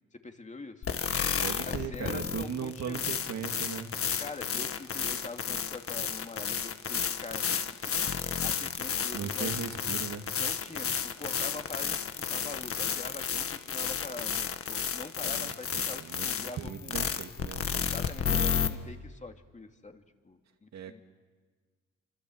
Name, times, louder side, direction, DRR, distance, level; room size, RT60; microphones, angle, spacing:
voice 1, 0.1-0.9 1.6-3.1 4.2-8.1 8.4-9.8 10.4-17.1 17.7-21.0, left 3 dB, 25° left, 5 dB, 2.5 m, -44 dB
sound 1, 0.8-18.7, left 7 dB, 45° left, 1.7 m, -32 dB
voice 2, 1.4-3.9 9.1-10.3 15.4-16.3 16.6-17.9 20.7-21.0, right 7 dB, 65° right, 6 dB, 2.2 m, -38 dB
29.0 x 26.0 x 7.9 m, 1.5 s
cardioid pair, 90°, 30 cm